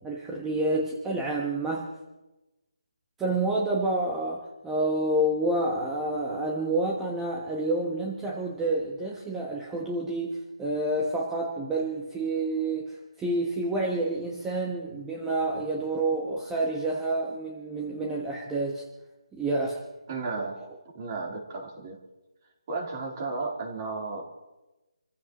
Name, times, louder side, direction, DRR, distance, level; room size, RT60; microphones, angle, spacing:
voice 1, 0.0-1.9 3.2-18.8 19.3-19.8, right 2 dB, 5° right, -2 dB, 1.4 m, -29 dB
voice 2, 20.1-20.6 20.9-22.0 22.7-24.2, right 3 dB, 30° right, 0 dB, 3.7 m, -33 dB
28.0 x 15.5 x 3.1 m, 1.1 s
figure-of-eight pair, 165°, 3 cm